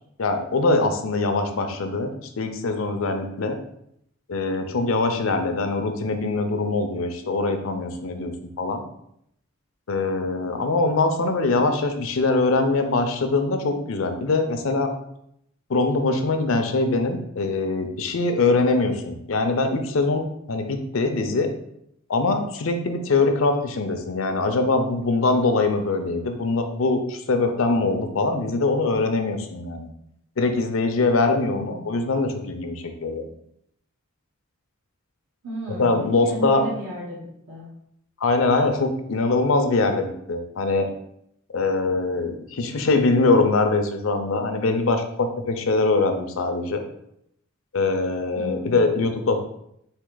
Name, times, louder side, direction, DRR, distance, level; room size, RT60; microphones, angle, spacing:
voice 1, 0.2-2.1 2.4-3.6 4.3-8.8 9.9-14.9 15.7-21.5 22.1-29.9 30.4-33.3 35.8-36.6 38.2-40.9 41.5-46.8 47.7-49.4, left 3 dB, 75° left, 6 dB, 0.6 m, -23 dB
voice 2, 31.3-31.9 35.4-37.7 48.3-48.8, equal, 75° right, -6 dB, 1.2 m, -34 dB
4.4 x 2.8 x 3.8 m, 0.75 s
head